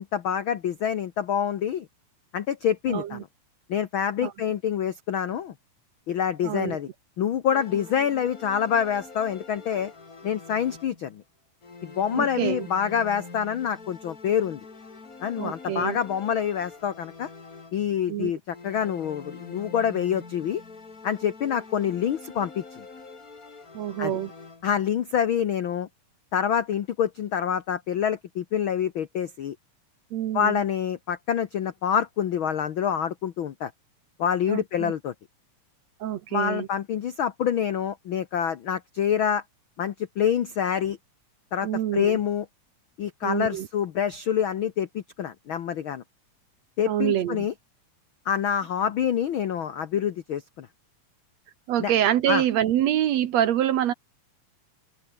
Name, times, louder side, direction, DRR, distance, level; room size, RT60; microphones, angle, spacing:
voice 1, 0.0-1.9 2.3-3.3 3.7-5.5 6.1-6.9 7.2-9.9 10.2-11.2 11.8-14.6 15.2-17.3 17.7-20.6 21.0-22.8 24.0-24.2 24.6-25.9 26.3-29.6 30.3-33.7 34.2-35.1 36.3-39.4 39.8-41.0 41.5-42.4 43.0-46.0 46.8-47.5 48.2-50.7 51.8-51.9 52.3-52.4, left 8 dB, 75° left, 1.1 m, -26 dB
voice 2, 2.9-3.2 4.2-4.3 6.4-6.8 12.1-12.7 15.4-16.0 18.1-18.3 23.7-24.3 30.1-30.6 34.5-34.9 36.0-36.7 41.6-42.2 43.2-43.7 46.9-47.5 51.7-53.9, right 11 dB, 65° right, 1.9 m, -26 dB
sound 1, 7.5-11.2 11.6-18.1 18.5-24.9, left 4 dB, 25° left, 3.0 m, -45 dB
omnidirectional pair, 3.8 m